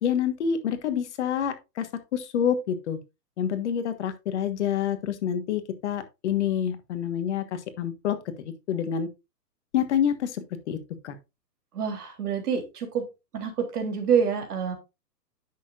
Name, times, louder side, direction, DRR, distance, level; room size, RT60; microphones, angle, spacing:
voice 1, 0.0-3.0 3.4-9.1 9.7-10.8 11.0-11.2, left 8 dB, 45° left, 1.5 m, -27 dB
voice 2, 11.7-13.0 13.3-14.7, right 7 dB, 65° right, 3.4 m, -27 dB
10.0 x 6.8 x 2.5 m
hypercardioid pair, 155°, 50 cm